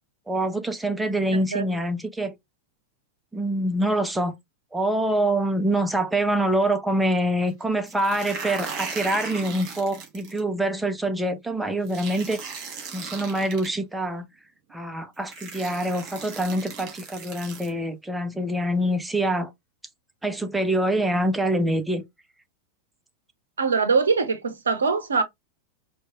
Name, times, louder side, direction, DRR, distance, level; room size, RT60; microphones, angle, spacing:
voice 1, 0.3-2.3 3.3-4.3 4.7-12.4 12.9-14.3 14.7-19.5 20.2-22.0, right 1 dB, 5° right, 0.6 m, -25 dB
sound 1, 7.9-10.4 11.9-13.7 14.7-14.8 15.3-17.7, right 5 dB, 40° right, 1.6 m, -37 dB
voice 2, 23.6-25.2, right 5 dB, 70° right, 0.6 m, -22 dB
4.4 x 2.3 x 2.9 m
figure-of-eight pair, 90°, 0 cm